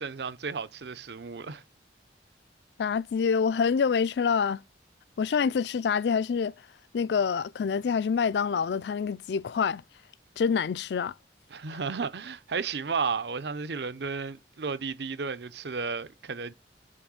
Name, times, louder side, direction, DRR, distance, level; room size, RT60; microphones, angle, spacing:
voice 1, 0.0-1.6 11.5-16.5, right 5 dB, 65° right, 0.6 m, -33 dB
voice 2, 2.8-4.6 5.2-6.5 6.9-9.8 10.4-11.1, left 6 dB, 65° left, 0.4 m, -26 dB
7.5 x 3.1 x 6.2 m
head